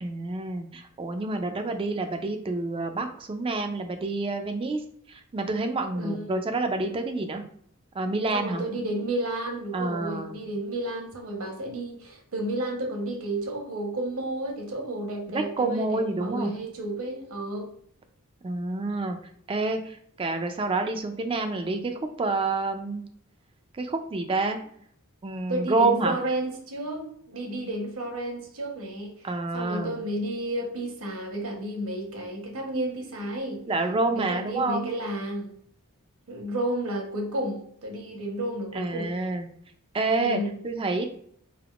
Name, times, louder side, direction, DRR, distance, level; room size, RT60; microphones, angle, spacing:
voice 1, 0.0-4.8 5.1-7.4 7.9-8.6 9.7-10.4 15.3-16.5 18.4-19.2 19.5-23.0 23.7-24.6 25.2-26.2 29.2-29.9 33.7-34.9 38.7-39.5 39.9-41.1, right 3 dB, 25° right, 0.3 m, -28 dB
voice 2, 5.9-6.5 8.3-17.7 25.5-29.3 29.5-33.7 34.1-35.6 36.3-39.2 40.1-40.6, right 1 dB, 65° right, 0.9 m, -32 dB
4.0 x 3.4 x 2.3 m
head